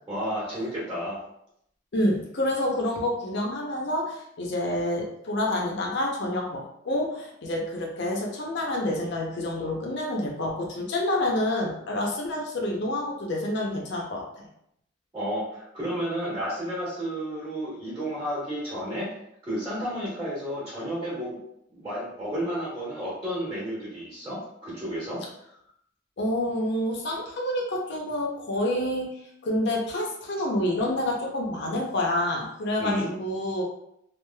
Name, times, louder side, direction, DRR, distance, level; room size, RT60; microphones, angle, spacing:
voice 1, 0.1-1.2 15.1-19.1 19.4-21.4 21.7-25.2 32.8-33.1, equal, 15° right, -10 dB, 1.2 m, -32 dB
voice 2, 1.9-14.5 26.2-29.1 29.4-33.6, left 1 dB, 65° left, -1 dB, 0.6 m, -28 dB
3.1 x 2.4 x 2.2 m, 0.75 s
head